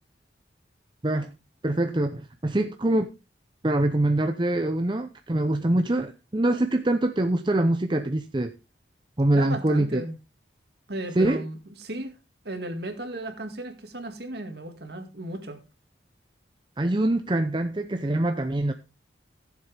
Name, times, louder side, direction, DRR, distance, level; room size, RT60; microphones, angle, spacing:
voice 1, 1.6-3.1 3.6-8.5 9.2-10.0 11.1-11.4 16.8-18.7, right 1 dB, 25° right, 7 dB, 0.6 m, -24 dB
voice 2, 9.3-10.2 10.9-12.1 12.4-15.6, right 1 dB, 60° right, 6 dB, 2.0 m, -35 dB
15.0 x 7.3 x 3.4 m, 0.28 s
head